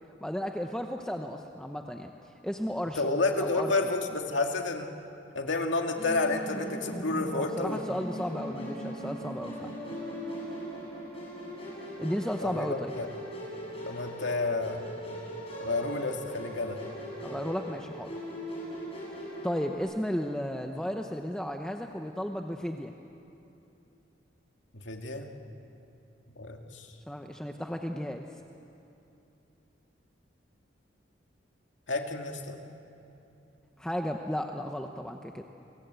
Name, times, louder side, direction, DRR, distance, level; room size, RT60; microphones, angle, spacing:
voice 1, 0.2-3.0 3.4-3.7 7.3-9.7 12.0-12.9 17.2-18.1 19.4-22.9 27.1-28.3 33.8-35.4, equal, 5° left, 3 dB, 0.8 m, -34 dB
voice 2, 3.0-4.9 5.3-7.8 12.4-13.1 13.9-14.8 15.6-16.8 24.7-25.3 26.4-26.9 31.9-32.6, left 3 dB, 85° left, 3 dB, 2.2 m, -30 dB
Musical instrument, 6.0-19.8, equal, 30° left, 7.6 m, -40 dB
29.5 x 23.0 x 8.2 m, 2.9 s
head